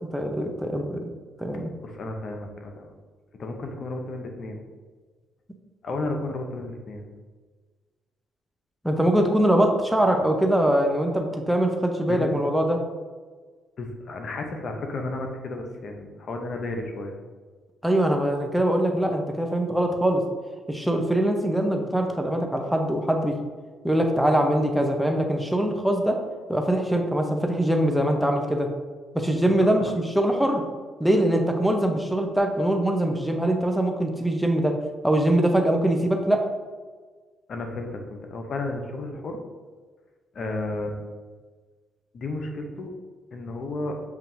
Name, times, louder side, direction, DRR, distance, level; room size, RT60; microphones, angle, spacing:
voice 1, 0.1-1.1 1.4-1.7 8.8-12.8 17.8-20.2 20.7-23.4 23.8-26.2 26.5-28.7 29.1-29.8 30.2-30.6 31.0-34.7 35.0-36.4, right 1 dB, ahead, 2 dB, 0.7 m, -23 dB
voice 2, 1.8-2.9 3.4-4.6 5.8-7.1 12.1-12.4 13.8-17.1 29.5-29.9 37.5-39.4 40.3-41.0 42.1-42.9 43.3-44.0, left 2 dB, 55° left, 3 dB, 0.6 m, -33 dB
7.0 x 2.8 x 2.6 m, 1.4 s
supercardioid pair, 55°, 0 cm